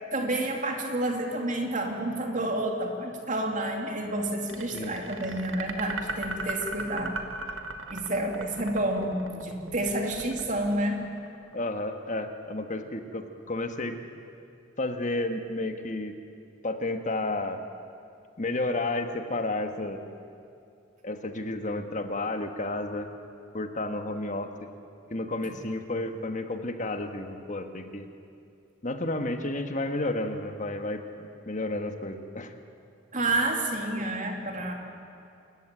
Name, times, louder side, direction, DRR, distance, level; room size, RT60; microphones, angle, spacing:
voice 1, 0.1-7.2 7.9-11.0 33.1-34.7, right 1 dB, 40° right, 2 dB, 2.9 m, -29 dB
sound 1, 4.5-11.6, right 3 dB, 80° right, 1.8 m, -37 dB
voice 2, 11.5-14.0 14.8-16.1 16.6-17.6 18.4-20.0 21.0-23.1 23.5-24.5 25.1-28.1 28.8-32.5, left 2 dB, 40° left, 7 dB, 1.5 m, -31 dB
27.5 x 14.5 x 9.1 m, 2.5 s
head